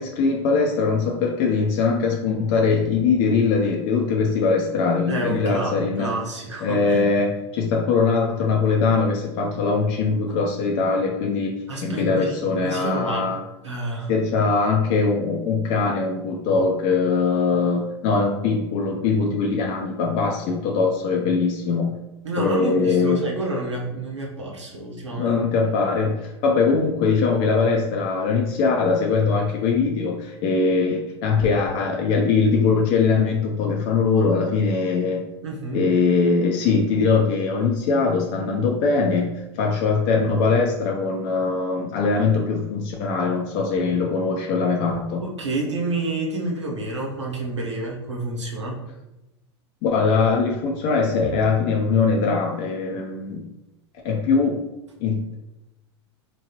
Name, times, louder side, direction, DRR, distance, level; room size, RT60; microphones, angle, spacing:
voice 1, 0.0-6.1 6.6-11.5 11.8-13.4 14.1-22.0 22.4-23.3 25.1-35.2 35.7-45.2 49.8-53.4 54.0-54.6 55.0-55.4, left 4 dB, 50° left, 0 dB, 0.6 m, -21 dB
voice 2, 5.1-7.1 11.7-12.3 12.6-13.3 13.6-14.1 22.2-25.4 35.4-35.9 45.2-48.8, right 2 dB, 90° right, -2 dB, 1.0 m, -29 dB
3.6 x 3.0 x 2.9 m, 0.97 s
hypercardioid pair, 95°, 15 cm